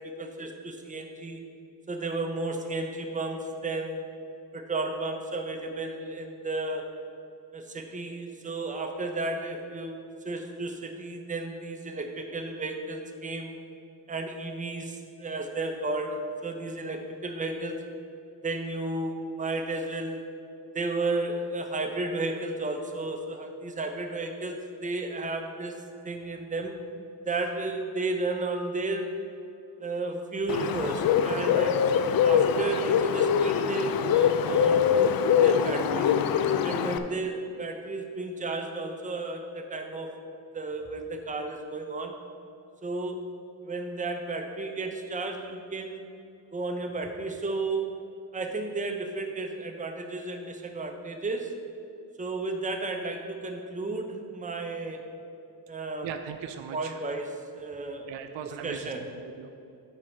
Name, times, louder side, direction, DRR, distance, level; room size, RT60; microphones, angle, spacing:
voice 1, 0.0-1.5 1.9-4.0 4.5-6.9 7.5-10.0 10.2-13.5 14.1-17.8 18.4-20.3 20.7-25.8 26.0-26.8 27.2-29.2 29.8-31.8 32.2-36.2 36.6-40.1 40.5-42.2 42.8-43.3 43.6-46.0 46.5-47.9 48.3-51.5 52.2-55.0 55.7-56.1 56.7-57.3 57.6-58.1 58.6-59.0, right 2 dB, 15° right, 4 dB, 0.8 m, -33 dB
Bird, 30.5-37.0, left 7 dB, 55° left, 0.5 m, -23 dB
voice 2, 56.0-57.0 58.1-59.5, right 8 dB, 80° right, 7 dB, 0.6 m, -39 dB
7.5 x 4.5 x 6.5 m, 2.6 s
cardioid pair, 95°, 44 cm